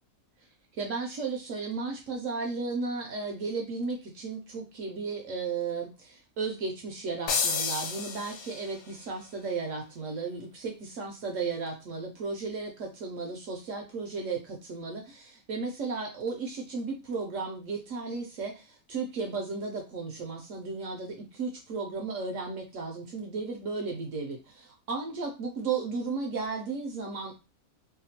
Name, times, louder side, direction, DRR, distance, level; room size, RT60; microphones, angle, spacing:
voice 1, 0.7-27.4, right 4 dB, 65° right, 1 dB, 0.8 m, -34 dB
sound 1, 7.3-8.9, left 5 dB, 90° left, 1.1 m, -31 dB
2.8 x 2.2 x 2.7 m, 0.28 s
omnidirectional pair, 1.6 m